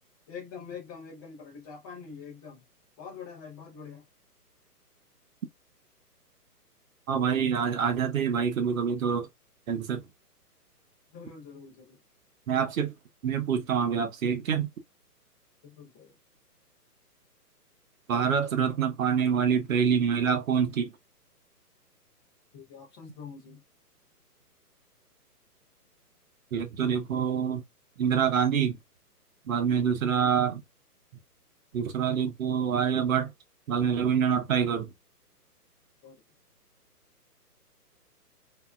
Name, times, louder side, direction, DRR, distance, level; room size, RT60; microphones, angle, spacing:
voice 1, 0.3-2.6 3.0-4.0 11.1-12.0 15.6-16.1 22.5-23.6 36.0-36.2, left 6 dB, 15° left, 0.7 m, -44 dB
voice 2, 7.1-9.3 9.7-10.0 12.5-12.9 13.2-14.7 18.1-20.9 26.5-27.6 28.0-28.8 29.5-30.6 31.7-33.3 33.7-34.9, right 7 dB, 55° right, 1.0 m, -26 dB
3.4 x 2.8 x 2.2 m
hypercardioid pair, 150°, 47 cm